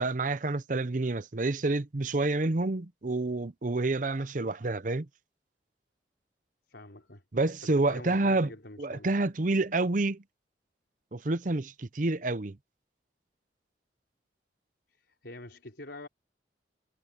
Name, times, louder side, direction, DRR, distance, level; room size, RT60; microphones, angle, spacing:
voice 1, 0.0-5.1 7.3-8.5 8.8-10.2 11.1-12.6, right 2 dB, 45° right, 0.7 m, -28 dB
voice 2, 6.7-7.2 7.6-9.1 14.9-16.1, left 1 dB, 75° left, 4.5 m, -46 dB
head